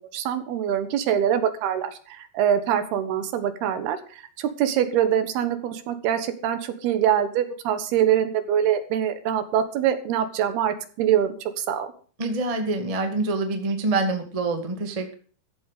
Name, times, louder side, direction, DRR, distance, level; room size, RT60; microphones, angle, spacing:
voice 1, 0.1-11.9, right 9 dB, 75° right, 10 dB, 3.2 m, -24 dB
voice 2, 12.2-15.1, right 3 dB, 20° right, 5 dB, 0.8 m, -26 dB
14.5 x 8.8 x 6.6 m, 0.42 s
omnidirectional pair, 4.8 m